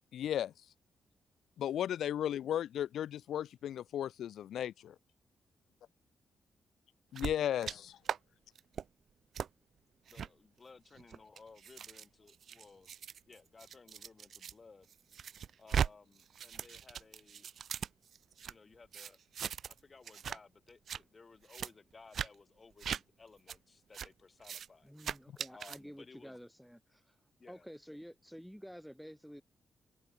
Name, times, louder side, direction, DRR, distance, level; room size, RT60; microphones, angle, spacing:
voice 1, 0.1-0.5 1.6-4.9 7.1-8.0, left 10 dB, 85° left, 1.2 m, -35 dB
sound 1, 7.2-7.8 8.0-8.2 8.6-8.8 9.3-9.5 10.1-10.3 11.0-14.5 14.9-15.9 16.2-18.5 18.9-19.8 20.0-20.4 20.7-21.0 21.5-21.7 22.1-22.3 22.8-23.0 23.5-23.6 23.9-24.1 24.4-24.7 25.0-25.8, right 8 dB, 55° right, 1.4 m, -39 dB
voice 2, 10.1-12.9 13.3-14.9 15.6-17.5 18.4-19.2 19.7-25.0 25.5-26.4 27.4-27.7, left 4 dB, 25° left, 4.6 m, -58 dB
voice 3, 24.8-27.2 27.5-29.4, equal, ahead, 3.2 m, -50 dB
wide cardioid pair, 170°, 0 cm